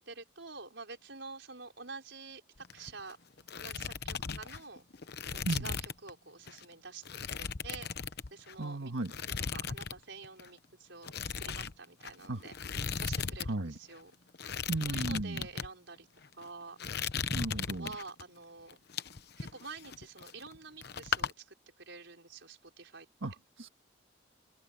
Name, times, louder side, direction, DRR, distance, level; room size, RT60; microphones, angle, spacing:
voice 1, 0.0-2.4 2.7-3.2 3.6-4.8 5.3-7.1 7.4-7.9 8.3-8.9 9.5-11.1 11.4-12.5 13.0-14.1 14.9-16.1 16.3-16.8 17.7-18.8 19.4-23.1, right 4 dB, 70° right, 5.0 m, -48 dB
sound 1, 2.6-3.1 3.4-6.1 6.5-6.6 7.1-8.6 9.1-10.0 10.2-10.5 11.0-13.5 13.8-13.9 14.3-15.7 16.2-16.5 16.8-18.2 18.7-20.6 20.8-21.3, left 6 dB, 55° left, 1.0 m, -37 dB
voice 2, 8.6-9.1 12.3-12.4 13.5-13.7 14.7-15.4 17.3-17.9 23.2-23.7, right 2 dB, 90° right, 1.7 m, -35 dB
head